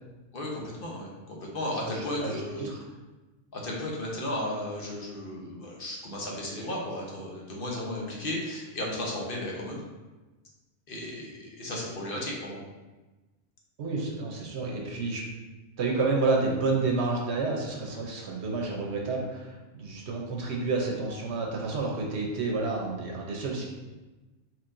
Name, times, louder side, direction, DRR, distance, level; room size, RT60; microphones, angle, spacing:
voice 1, 0.3-2.7 3.5-9.8 10.9-12.6, left 1 dB, 50° left, -2 dB, 1.1 m, -34 dB
voice 2, 1.8-2.8 13.8-15.2 15.8-23.7, right 3 dB, 65° right, -1 dB, 1.0 m, -30 dB
4.5 x 4.0 x 2.6 m, 1.2 s
omnidirectional pair, 1.3 m